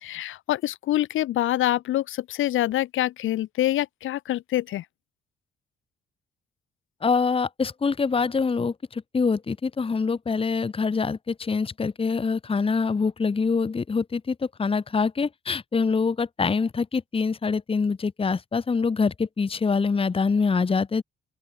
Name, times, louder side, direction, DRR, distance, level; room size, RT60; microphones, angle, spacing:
voice 1, 0.0-4.8, left 14 dB, 85° left, 4.4 m, -26 dB
voice 2, 7.0-21.0, left 5 dB, 30° left, 1.4 m, -25 dB
open air
cardioid pair, 90°, 20 cm